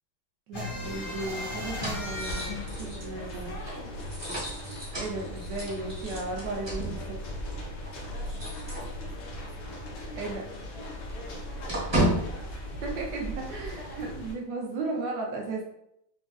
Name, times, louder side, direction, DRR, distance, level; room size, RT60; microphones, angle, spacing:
sound 1, 0.5-3.8 4.2-4.3 4.6-5.6, left 2 dB, 45° left, 0.7 m, -37 dB
voice 1, 0.5-3.5 5.0-7.4 10.2-10.4 12.8-15.6, right 3 dB, 75° right, 0 dB, 1.0 m, -35 dB
sound 2, 0.7-9.4 9.7-9.9 10.2-13.7, right 1 dB, 30° right, 0.5 m, -35 dB
sound 3, 0.8-14.3, left 1 dB, 90° left, 1.8 m, -40 dB
voice 2, 3.0-4.4 8.0-9.9 10.2-10.9 11.1-13.0 13.5-14.3, left 2 dB, 70° left, -2 dB, 1.5 m, -48 dB
5.0 x 2.3 x 2.3 m, 0.78 s
omnidirectional pair, 2.4 m